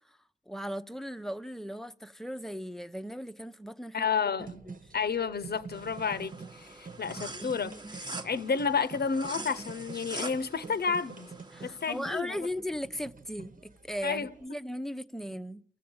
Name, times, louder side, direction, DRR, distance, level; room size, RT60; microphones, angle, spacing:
voice 1, 0.5-4.1 4.4-4.8 11.5-15.6, equal, ahead, 0.9 m, -37 dB
voice 2, 3.9-4.7 4.9-11.3 11.6-12.4 14.0-14.3, left 5 dB, 60° left, 0.9 m, -31 dB
sound 1, 4.4-14.5, right 4 dB, 45° right, 1.3 m, -47 dB
sound 2, 5.7-12.2, right 2 dB, 25° right, 1.2 m, -44 dB
29.0 x 14.5 x 8.8 m
cardioid pair, 75°, 19 cm